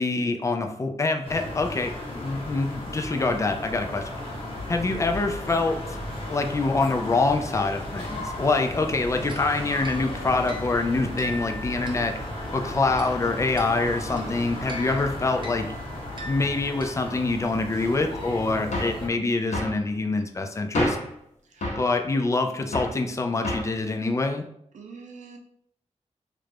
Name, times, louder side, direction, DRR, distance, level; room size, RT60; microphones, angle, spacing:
voice 1, 0.0-4.1 4.7-5.8 6.3-12.1 12.5-15.7 16.3-21.0 21.8-24.4, left 3 dB, 25° left, 5 dB, 0.3 m, -25 dB
sound 1, 1.2-19.1, left 1 dB, 50° left, 0.9 m, -35 dB
sound 2, 9.3-17.6, equal, 40° right, 0.6 m, -43 dB
sound 3, 18.7-19.0 19.5-19.8 20.7-21.1 21.6-21.9 22.7-23.0 23.4-23.8, left 1 dB, 75° left, 0.8 m, -28 dB
voice 2, 21.5-21.9 24.7-25.4, right 5 dB, 85° right, 2 dB, 0.5 m, -45 dB
3.2 x 2.5 x 3.2 m, 0.72 s
wide cardioid pair, 140°, 12 cm